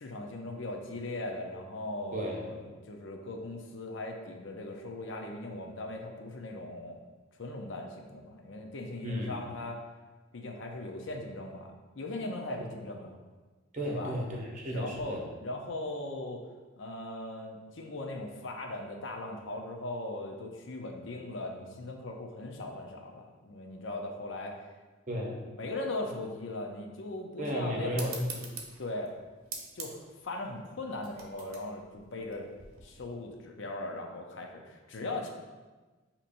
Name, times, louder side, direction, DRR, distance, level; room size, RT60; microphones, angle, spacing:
voice 1, 0.0-7.0 7.4-9.8 10.3-11.7 12.0-13.1 13.8-14.1 14.7-16.4 16.8-24.6 25.6-28.1 28.8-29.1 29.7-32.5 32.8-35.3, left 2 dB, 60° left, 2 dB, 0.6 m, -39 dB
voice 2, 2.1-2.5 9.0-9.3 13.7-15.2 25.1-25.4 27.4-28.4, equal, 35° right, -1 dB, 0.8 m, -34 dB
sound 1, 27.9-33.0, right 5 dB, 75° right, 0.7 m, -45 dB
6.8 x 2.9 x 2.5 m, 1.3 s
head